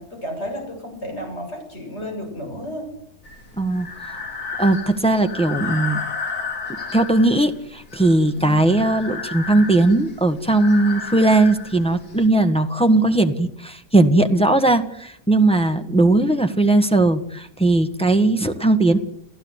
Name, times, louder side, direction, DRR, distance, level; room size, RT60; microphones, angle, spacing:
voice 1, 0.0-2.9, equal, 35° left, 1 dB, 8.0 m, -32 dB
Breathing, 3.3-12.3, left 5 dB, 55° left, 3.2 m, -32 dB
voice 2, 3.5-4.2 4.6-6.0 6.9-19.0, right 2 dB, 5° left, 6 dB, 1.3 m, -18 dB
29.5 x 14.5 x 8.1 m, 0.76 s
omnidirectional pair, 1.9 m